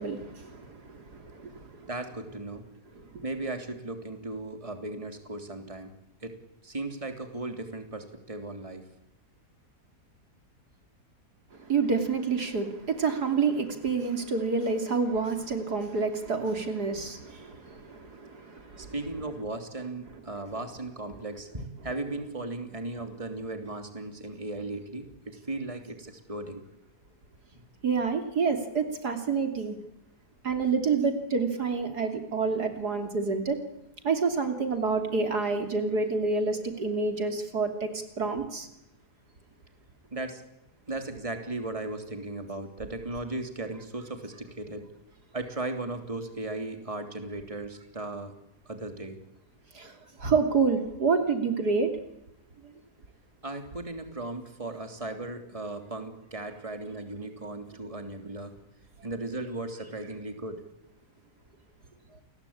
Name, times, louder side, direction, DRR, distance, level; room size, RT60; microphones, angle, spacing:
voice 1, 0.0-1.9 3.1-3.2 11.7-18.9 27.8-29.8 30.4-33.6 34.0-38.7 49.7-49.9 50.2-51.9, right 4 dB, 75° right, 3.6 m, -28 dB
voice 2, 1.9-2.7 3.2-5.9 6.2-8.9 18.8-26.6 27.5-27.6 40.1-40.4 40.9-44.9 45.3-48.3 48.6-49.2 53.4-58.5 59.0-60.6 62.1-62.2, right 2 dB, 20° right, 3.2 m, -36 dB
29.5 x 21.5 x 8.8 m
omnidirectional pair, 1.7 m